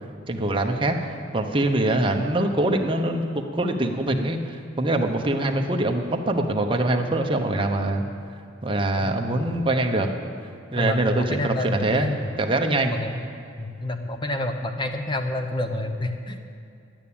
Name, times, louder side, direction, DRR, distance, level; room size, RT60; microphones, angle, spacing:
voice 1, 0.3-3.3 3.5-8.1 8.6-10.1 10.7-13.0, right 1 dB, 25° right, 3 dB, 0.9 m, -24 dB
voice 2, 10.8-12.1 12.9-13.1 13.6-16.4, left 1 dB, 25° left, 6 dB, 0.9 m, -28 dB
11.0 x 8.9 x 8.6 m, 2.4 s
head